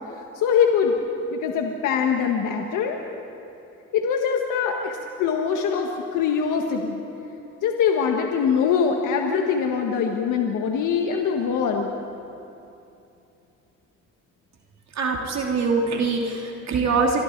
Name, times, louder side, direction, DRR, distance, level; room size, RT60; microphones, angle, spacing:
voice 1, 0.4-0.9 1.3-3.0 3.9-7.0 7.6-11.9, left 6 dB, 90° left, 2 dB, 1.6 m, -23 dB
voice 2, 15.0-17.2, right 4 dB, 60° right, 0 dB, 3.0 m, -23 dB
27.0 x 24.0 x 4.7 m, 2.8 s
cardioid pair, 90°, 30 cm